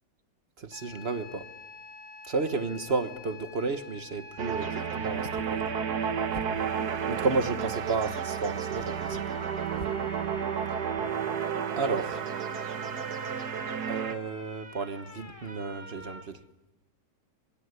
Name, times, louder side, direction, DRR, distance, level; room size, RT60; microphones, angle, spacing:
voice 1, 0.6-1.5 2.3-5.6 7.1-9.2 11.8-12.2 13.9-16.4, right 4 dB, 40° right, 1.5 m, -32 dB
sound 1, 0.7-16.2, left 2 dB, 20° left, 3.5 m, -48 dB
sound 2, 4.4-14.1, right 7 dB, 65° right, 1.8 m, -32 dB
sound 3, 5.0-7.0 8.0-8.1 8.7-10.1, left 4 dB, 35° left, 0.9 m, -47 dB
24.0 x 23.0 x 9.7 m
omnidirectional pair, 1.9 m